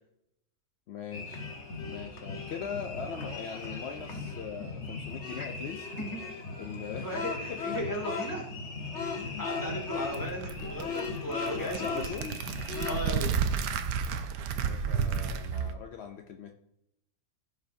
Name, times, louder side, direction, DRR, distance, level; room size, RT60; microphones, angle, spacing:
voice 1, 0.9-1.5 1.8-5.9 6.6-7.1 7.5-7.8 9.1-9.5 11.5-12.4 14.6-16.5, left 7 dB, 65° left, 5 dB, 0.6 m, -40 dB
sound 1, 1.1-13.1, left 4 dB, 50° left, 1.3 m, -37 dB
voice 2, 7.0-8.5 9.4-12.1 12.8-13.4, equal, 10° left, -1 dB, 2.4 m, -36 dB
sound 2, 9.7-15.7, right 6 dB, 80° right, 1.3 m, -32 dB
15.0 x 5.6 x 2.7 m, 0.80 s
omnidirectional pair, 1.8 m